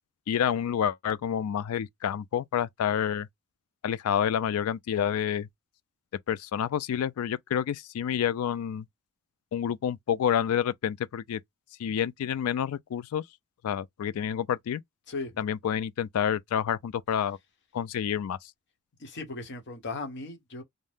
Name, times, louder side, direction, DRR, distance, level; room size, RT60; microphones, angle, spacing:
voice 1, 0.3-3.3 3.8-5.5 6.3-8.8 9.5-11.4 11.8-13.2 13.6-14.8 15.4-17.4 17.7-18.4, left 9 dB, 80° left, 0.3 m, -28 dB
voice 2, 19.0-20.6, left 3 dB, 55° left, 0.9 m, -37 dB
2.7 x 2.0 x 3.3 m
head